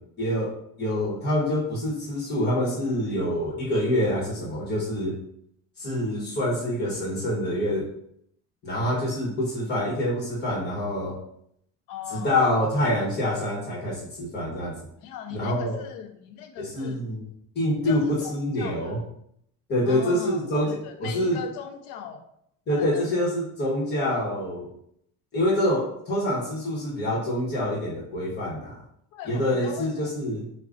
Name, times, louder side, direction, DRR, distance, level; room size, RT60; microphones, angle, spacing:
voice 1, 0.2-0.5 0.8-5.1 5.8-7.9 8.6-11.2 12.1-14.7 15.3-15.8 16.6-17.3 17.5-19.0 19.7-21.4 22.7-24.7 25.3-28.8 29.3-30.5, left 1 dB, 30° left, -6 dB, 1.1 m, -26 dB
voice 2, 11.9-12.4 15.0-17.0 17.8-19.0 19.9-22.2 22.7-23.3 29.1-30.1, left 8 dB, 75° left, 6 dB, 0.6 m, -39 dB
4.8 x 2.2 x 2.5 m, 0.72 s
cardioid pair, 150°, 33 cm